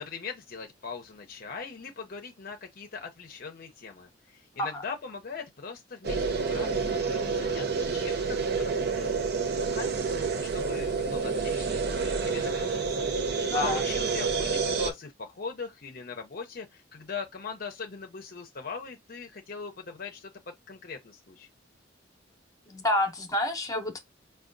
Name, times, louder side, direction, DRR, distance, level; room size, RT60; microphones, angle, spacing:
voice 1, 0.0-9.3 9.5-21.5, left 5 dB, 50° left, 0.6 m, -40 dB
sound 1, 6.0-14.9, right 4 dB, 60° right, 0.5 m, -29 dB
voice 2, 22.7-24.0, left 1 dB, 20° left, 0.8 m, -28 dB
4.7 x 2.2 x 2.5 m
head